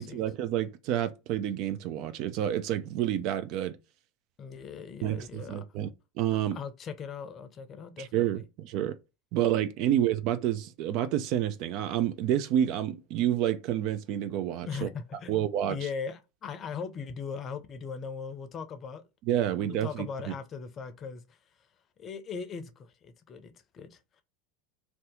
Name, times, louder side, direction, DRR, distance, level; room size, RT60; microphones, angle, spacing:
voice 1, 0.0-3.8 5.0-5.9 6.2-6.6 8.0-9.0 9.3-14.9 15.3-15.8 19.3-20.3, right 11 dB, 55° right, 0.4 m, -29 dB
voice 2, 4.4-5.6 6.5-8.5 14.7-15.4 15.7-19.0 19.6-21.4 22.0-24.2, left 6 dB, 35° left, 0.6 m, -39 dB
2.7 x 2.3 x 3.6 m
hypercardioid pair, 85°, 0 cm